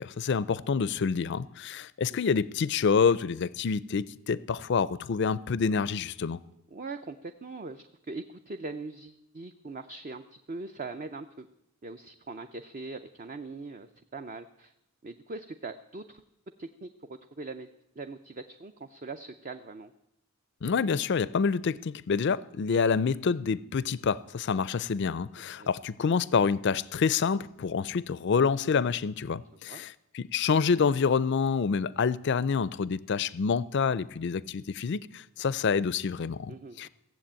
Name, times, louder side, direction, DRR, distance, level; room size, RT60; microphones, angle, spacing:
voice 1, 0.0-6.4 20.6-36.9, left 5 dB, 50° left, 0.4 m, -27 dB
voice 2, 6.7-11.5 11.8-14.7 15.0-16.2 16.6-17.7 18.0-19.9 25.6-25.7 29.7-29.8 36.5-36.9, right 3 dB, 35° right, 0.5 m, -41 dB
15.5 x 7.5 x 8.8 m
head